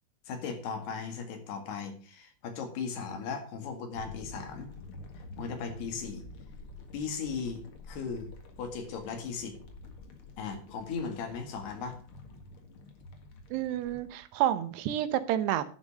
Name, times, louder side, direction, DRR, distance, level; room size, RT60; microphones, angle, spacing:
voice 1, 0.3-4.7 5.4-6.3 6.9-8.3 8.6-9.6 10.4-12.0, left 5 dB, 75° left, 5 dB, 3.9 m, -37 dB
sound 1, 3.9-14.0, left 2 dB, 50° left, 1.8 m, -48 dB
voice 2, 13.5-15.6, right 12 dB, 85° right, 12 dB, 3.0 m, -29 dB
11.0 x 7.0 x 6.4 m, 0.41 s
omnidirectional pair, 4.8 m